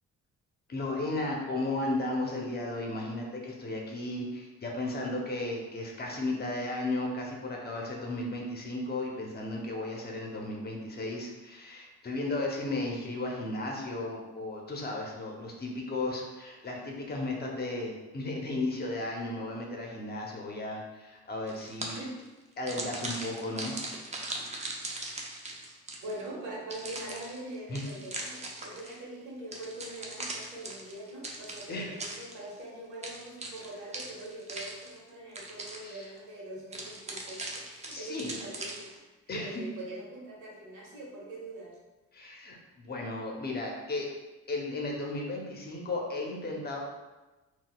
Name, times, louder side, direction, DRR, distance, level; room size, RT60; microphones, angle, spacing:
voice 1, 0.7-22.0 22.6-23.7 27.7-27.8 28.8-28.9 31.7-31.9 35.8-36.0 37.9-38.4 39.3-39.6 42.1-44.1 44.5-46.8, left 2 dB, 35° left, -1 dB, 0.7 m, -35 dB
sound 1, 21.5-22.2 22.7-26.2 26.7-29.0 29.5-32.6 33.0-35.1 35.3-36.0 36.7-39.0, right 2 dB, 25° right, 0.5 m, -40 dB
voice 2, 26.0-41.8, right 1 dB, 90° right, -4 dB, 1.0 m, -43 dB
3.9 x 2.3 x 2.2 m, 1.1 s
cardioid pair, 90°, 30 cm